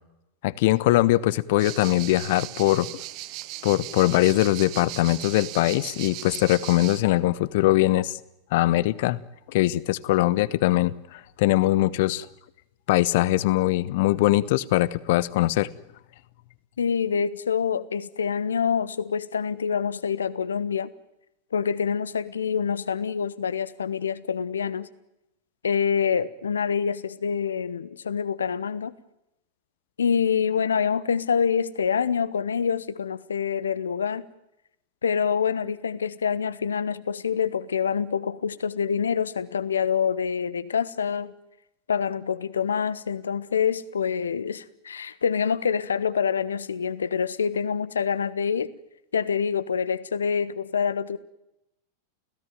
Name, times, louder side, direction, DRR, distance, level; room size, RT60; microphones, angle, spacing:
voice 1, 0.4-2.9 3.6-8.2 8.5-9.2 9.5-12.3 12.9-15.7, left 16 dB, 50° left, 20 dB, 1.0 m, -22 dB
sound 1, 1.6-7.0, right 17 dB, 40° right, 1.0 m, -38 dB
voice 2, 16.8-20.9 21.5-24.9 25.6-28.9 30.0-34.3 35.0-41.3 41.9-48.7 49.1-51.2, left 7 dB, 70° left, 18 dB, 1.2 m, -26 dB
30.0 x 17.0 x 9.3 m, 0.90 s
figure-of-eight pair, 90°, 0 cm